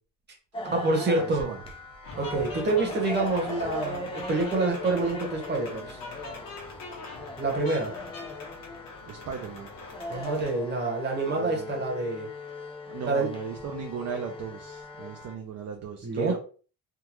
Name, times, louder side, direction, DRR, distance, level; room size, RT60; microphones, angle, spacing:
sound 1, 0.5-15.3, left 3 dB, 15° left, 0.4 m, -39 dB
voice 1, 0.6-1.5 2.2-6.0 7.4-7.9 10.1-12.3 13.0-13.3 16.0-16.4, right 3 dB, 30° right, 0 dB, 1.0 m, -27 dB
voice 2, 1.2-1.6 7.1-7.2 9.1-9.7 11.3-11.8 12.5-16.4, right 6 dB, 50° right, 2 dB, 0.5 m, -37 dB
sound 2, 2.0-10.6, left 3 dB, 80° left, 1.2 m, -43 dB
3.7 x 2.2 x 3.0 m, 0.38 s
cardioid pair, 170°, 34 cm